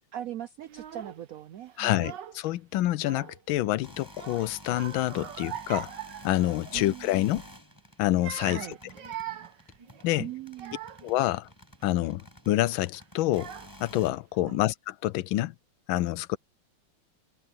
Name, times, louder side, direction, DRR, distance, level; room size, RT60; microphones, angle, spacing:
voice 1, 0.1-2.1 6.7-7.2 8.4-8.8 10.2-10.8 14.4-14.6, right 11 dB, 90° right, 0.7 m, -40 dB
Child speech kid speaking / Crying sobbing, 0.7-1.2 1.8-2.5 2.8-3.6 4.1-7.0 7.3-7.5 8.0-11.2 11.8-12.2 12.9-13.0 13.3-14.0, right 10 dB, 65° right, 1.7 m, -42 dB
voice 2, 1.8-2.1 2.4-5.9 6.2-7.4 8.0-8.6 10.0-10.3 11.0-11.5 11.8-13.5 13.8-15.5 15.9-16.4, left 15 dB, 80° left, 1.4 m, -27 dB
sound 1, 3.7-14.1, equal, 10° left, 7.3 m, -51 dB
omnidirectional pair, 2.2 m